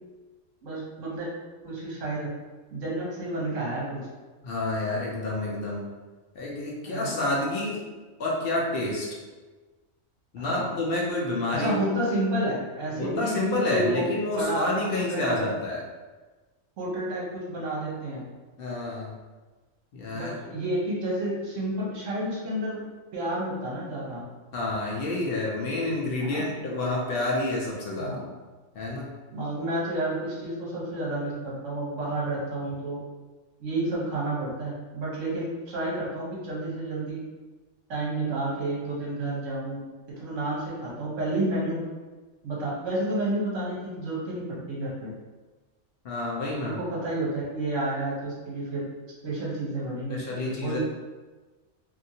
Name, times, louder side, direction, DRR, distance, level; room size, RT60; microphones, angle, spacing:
voice 1, 0.6-1.3 1.6-2.3 2.7-4.0 6.9-7.2 10.4-10.7 11.5-14.1 14.3-15.4 16.8-18.2 20.1-22.8 23.1-24.2 26.2-26.4 27.9-28.3 29.3-33.0 33.6-37.3 37.9-39.8 40.2-41.9 42.4-45.1 46.6-48.8 49.2-50.8, right 1 dB, 70° right, -5 dB, 1.2 m, -30 dB
voice 2, 4.4-5.9 6.4-7.8 8.2-9.1 10.3-11.8 13.0-15.8 18.6-19.1 19.9-20.3 24.5-28.2 28.7-29.1 46.0-46.8 50.1-50.8, left 2 dB, 60° left, -3 dB, 0.6 m, -29 dB
2.7 x 2.5 x 2.7 m, 1.3 s
omnidirectional pair, 1.4 m